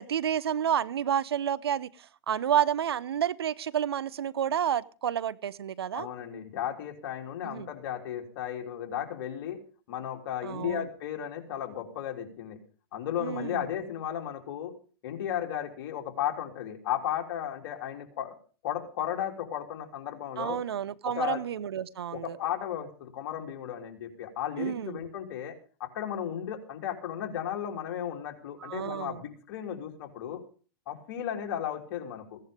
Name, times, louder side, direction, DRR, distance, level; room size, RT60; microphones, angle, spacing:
voice 1, 0.0-1.9 2.3-6.1 7.4-7.7 10.4-10.9 13.2-13.7 20.4-22.4 24.6-25.0 28.6-29.2, right 9 dB, 85° right, 0.7 m, -30 dB
voice 2, 5.9-9.6 9.9-12.6 12.9-14.7 15.0-18.3 18.6-20.7 21.0-21.4 22.1-25.5 25.8-30.4 30.9-32.4, left 10 dB, 60° left, 3.3 m, -34 dB
16.5 x 10.5 x 5.2 m
hypercardioid pair, 115°, 13 cm